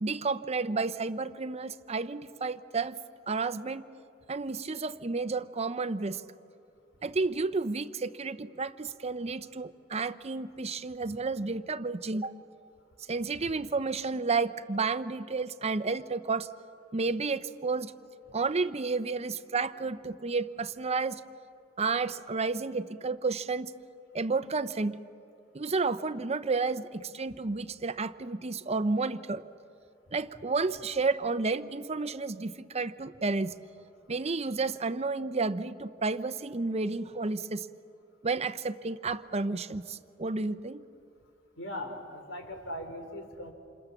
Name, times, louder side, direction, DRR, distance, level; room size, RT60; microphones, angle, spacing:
voice 1, 0.0-3.0 3.3-3.8 4.3-6.2 7.0-12.3 13.1-16.5 16.9-17.9 18.3-21.2 21.8-23.7 24.1-25.0 25.5-29.4 30.1-33.6 34.1-37.7 38.2-40.8, right 4 dB, 35° right, 12 dB, 0.7 m, -31 dB
voice 2, 41.6-43.5, left 1 dB, 90° left, 5 dB, 3.7 m, -39 dB
28.5 x 28.0 x 7.2 m, 2.5 s
head